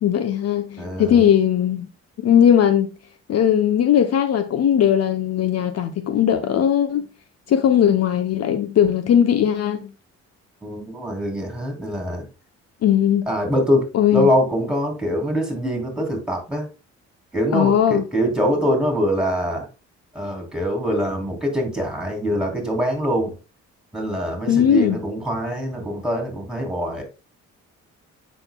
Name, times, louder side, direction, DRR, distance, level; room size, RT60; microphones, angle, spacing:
voice 1, 0.0-1.9 2.2-2.9 3.3-7.0 7.5-9.9 12.8-13.3 13.9-14.3 17.5-18.0 24.5-25.0, left 9 dB, 55° left, 0.8 m, -18 dB
voice 2, 0.8-1.3 10.6-12.2 13.3-16.7 17.3-19.7 20.1-23.3 23.9-27.0, equal, ahead, 3.5 m, -23 dB
7.8 x 6.4 x 2.3 m
cardioid pair, 90°, 30 cm